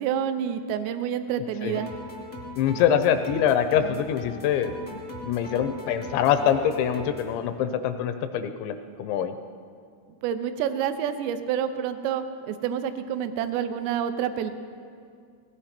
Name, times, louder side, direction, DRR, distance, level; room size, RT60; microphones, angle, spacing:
voice 1, 0.0-1.9 10.2-14.5, right 9 dB, 80° right, 9 dB, 2.7 m, -28 dB
sound 1, 1.7-7.3, left 1 dB, 15° left, 0.7 m, -40 dB
voice 2, 2.5-5.0 5.2-9.3, left 9 dB, 85° left, 9 dB, 2.8 m, -24 dB
18.0 x 16.0 x 4.4 m, 2.2 s
omnidirectional pair, 5.4 m